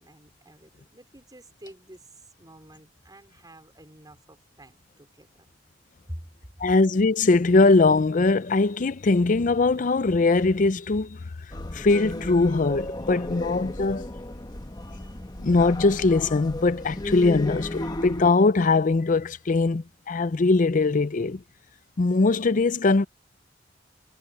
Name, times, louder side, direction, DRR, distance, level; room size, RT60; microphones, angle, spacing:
voice 1, 0.0-5.5 6.1-6.7, equal, 20° right, 4.9 m, -47 dB
voice 2, 6.6-11.2 11.7-14.1 15.4-21.4 22.0-23.0, left 3 dB, 45° left, 0.5 m, -21 dB
sound 1, 11.5-18.3, left 1 dB, 25° left, 1.3 m, -34 dB
head